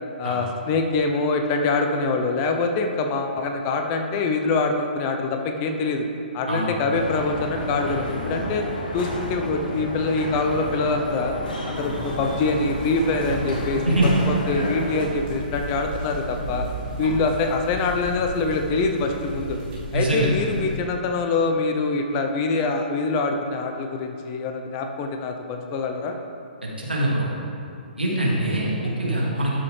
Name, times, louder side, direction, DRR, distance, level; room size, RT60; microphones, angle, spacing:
voice 1, 0.2-6.1 6.3-8.6 8.9-11.4 11.7-16.6 17.0-19.6 19.9-26.1, left 3 dB, 30° left, 4 dB, 0.8 m, -24 dB
sound 1, 6.9-15.1, equal, 65° left, 2.0 m, -31 dB
sound 2, 11.7-20.8, right 1 dB, 20° right, 2.2 m, -34 dB
voice 2, 19.9-20.3 26.6-27.3 28.0-29.5, right 1 dB, 90° right, -5 dB, 2.3 m, -23 dB
12.5 x 6.8 x 3.4 m, 2.6 s
figure-of-eight pair, 125°, 5 cm